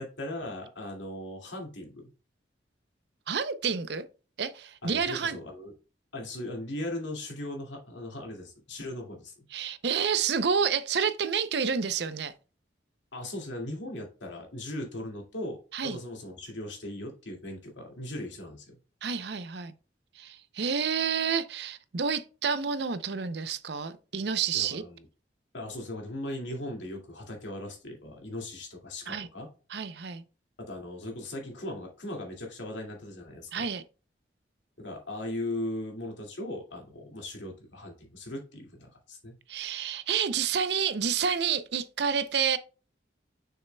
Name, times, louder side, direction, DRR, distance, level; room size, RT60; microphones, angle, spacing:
voice 1, 0.0-2.1 4.8-5.7 6.1-9.3 13.1-18.8 24.5-25.0 25.5-29.5 30.6-33.7 34.8-39.3, left 1 dB, 90° left, 2.2 m, -38 dB
voice 2, 3.3-4.0 4.4-5.4 9.5-12.3 15.7-16.0 19.0-19.7 20.1-24.8 29.1-29.3 29.7-30.2 33.5-33.8 39.5-42.6, right 6 dB, 65° right, 0.6 m, -29 dB
6.6 x 6.4 x 2.3 m
head